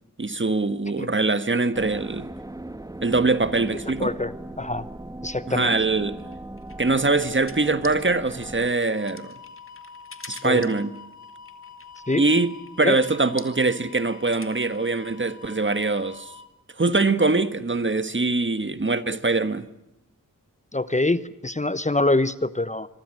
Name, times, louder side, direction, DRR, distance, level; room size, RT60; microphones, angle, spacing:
voice 1, 0.2-2.3 3.0-4.1 5.5-6.2 6.8-9.3 10.3-10.9 12.2-16.3 16.8-19.7, right 3 dB, 35° right, 1.5 m, -23 dB
sound 1, 1.7-8.7, right 1 dB, 10° right, 1.3 m, -38 dB
voice 2, 4.0-4.8 5.2-5.7 10.3-10.7 12.1-12.2 12.8-13.0 20.7-22.9, left 2 dB, 20° left, 1.0 m, -25 dB
sound 2, 6.2-14.9, left 3 dB, 40° left, 2.3 m, -46 dB
sound 3, 8.9-16.5, left 5 dB, 60° left, 3.3 m, -46 dB
25.5 x 24.0 x 7.8 m
cardioid pair, 55°, 32 cm